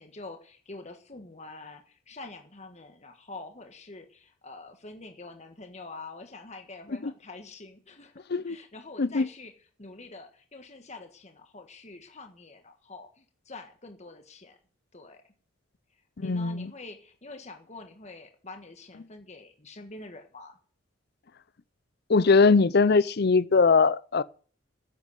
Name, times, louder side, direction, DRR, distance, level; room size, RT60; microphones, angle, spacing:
voice 1, 0.0-9.5 9.8-14.6 14.9-15.2 16.2-20.6, left 3 dB, 35° left, 1.5 m, -46 dB
voice 2, 9.0-9.3 16.2-16.7 22.1-24.2, left 4 dB, 50° left, 0.6 m, -21 dB
10.5 x 8.2 x 9.5 m
head